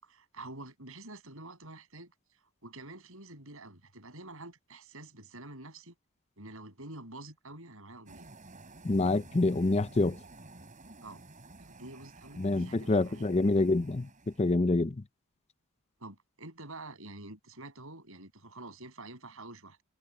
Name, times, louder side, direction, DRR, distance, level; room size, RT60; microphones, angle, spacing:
voice 1, 0.0-2.1 2.6-5.9 6.4-8.3 11.0-11.2 11.6-13.3 16.0-19.8, right 2 dB, 65° right, 7.8 m, -47 dB
sound 1, 8.1-14.6, right 2 dB, 35° right, 7.5 m, -52 dB
voice 2, 8.8-10.2 12.4-14.1 14.4-15.0, left 2 dB, 30° left, 0.6 m, -26 dB
head